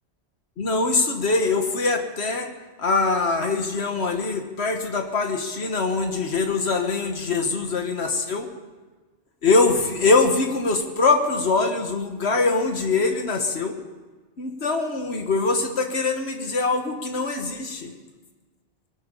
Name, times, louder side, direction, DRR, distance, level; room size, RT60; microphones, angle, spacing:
voice 1, 0.6-2.5 2.8-8.5 9.4-13.8 14.4-17.9, left 3 dB, 70° left, 5 dB, 1.7 m, -23 dB
21.0 x 12.5 x 5.6 m, 1.3 s
omnidirectional pair, 1.1 m